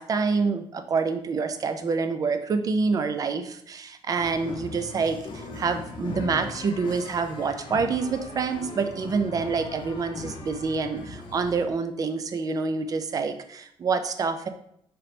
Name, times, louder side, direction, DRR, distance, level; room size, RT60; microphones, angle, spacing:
voice 1, 0.0-14.5, right 4 dB, 35° right, 9 dB, 0.4 m, -27 dB
sound 1, 4.1-11.7, left 3 dB, 55° left, 0.8 m, -39 dB
5.0 x 3.0 x 3.2 m, 0.70 s
cardioid pair, 145°, 10 cm